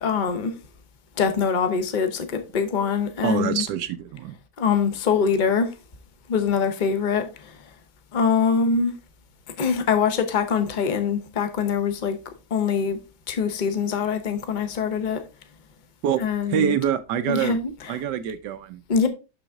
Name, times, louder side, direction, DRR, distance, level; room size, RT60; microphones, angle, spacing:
voice 1, 0.0-0.5 1.2-3.6 4.6-5.7 6.3-7.5 8.1-8.9 9.6-12.2 12.5-13.0 13.3-15.2 16.2-16.8 17.3-17.7 18.9-19.1, left 6 dB, 55° left, 0.5 m, -23 dB
voice 2, 3.2-4.4 16.0-16.2 16.5-17.6 17.9-18.8, right 9 dB, 70° right, 1.1 m, -25 dB
6.6 x 6.1 x 3.5 m
omnidirectional pair, 2.2 m